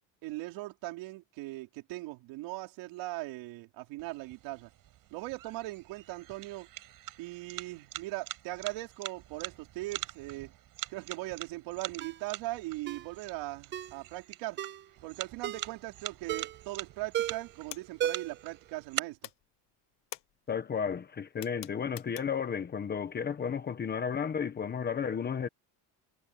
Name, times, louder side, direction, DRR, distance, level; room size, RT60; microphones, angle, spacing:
voice 1, 0.2-4.7 5.1-6.7 7.2-10.5 10.9-14.6 15.0-19.2, right 19 dB, 85° right, 3.9 m, -39 dB
sound 1, 4.0-19.0, right 13 dB, 50° right, 6.5 m, -44 dB
Ringtone, 12.0-12.2 12.9-13.1 13.7-14.0 14.6-14.9 15.4-15.7 16.3-16.7 17.1-17.5 18.0-18.5 18.8-18.9, right 11 dB, 30° right, 0.4 m, -35 dB
sound 2, 17.7-18.9 19.2-22.6, left 15 dB, 50° left, 1.2 m, -48 dB
voice 2, 20.5-25.5, left 7 dB, 25° left, 1.2 m, -33 dB
cardioid pair, 175°, 43 cm